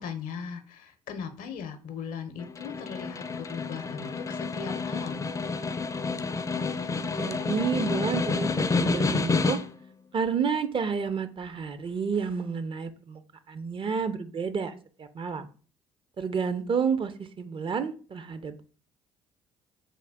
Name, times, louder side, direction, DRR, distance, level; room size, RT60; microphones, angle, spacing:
voice 1, 0.0-5.2, left 6 dB, 65° left, 9 dB, 0.6 m, -38 dB
Snare drum, 2.4-9.9, left 4 dB, 20° left, 0.4 m, -29 dB
voice 2, 7.2-9.6 10.1-13.2 13.5-14.7 15.0-15.4 16.2-17.1 17.4-18.6, right 6 dB, 35° right, 11 dB, 0.4 m, -30 dB
3.7 x 2.2 x 3.4 m, 0.39 s
hypercardioid pair, 55°, 15 cm